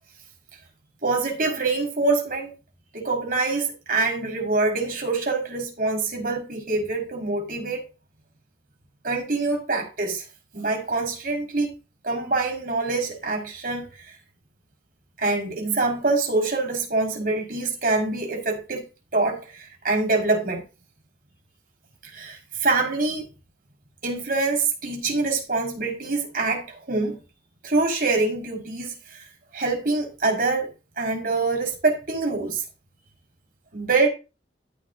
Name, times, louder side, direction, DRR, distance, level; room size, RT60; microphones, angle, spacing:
voice 1, 1.0-2.5 2.9-7.9 9.0-10.2 10.5-11.7 12.0-14.1 15.2-18.9 19.1-20.6 22.1-23.3 24.0-27.2 27.6-29.2 29.5-30.7 31.0-32.6 33.7-34.1, right 3 dB, 50° right, 5.2 m, -25 dB
14.5 x 9.0 x 2.7 m
head